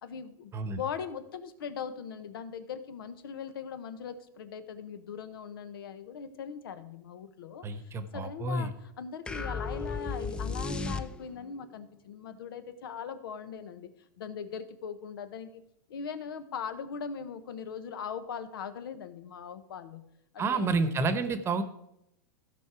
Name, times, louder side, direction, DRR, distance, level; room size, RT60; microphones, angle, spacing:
voice 1, 0.0-15.6 15.9-20.9, left 7 dB, 85° left, 11 dB, 1.0 m, -40 dB
voice 2, 7.6-8.7 20.4-21.6, right 3 dB, 20° right, 10 dB, 1.0 m, -29 dB
sound 1, 9.3-11.5, left 4 dB, 10° left, 0.4 m, -34 dB
15.5 x 5.3 x 4.8 m, 0.80 s
supercardioid pair, 140°, 12 cm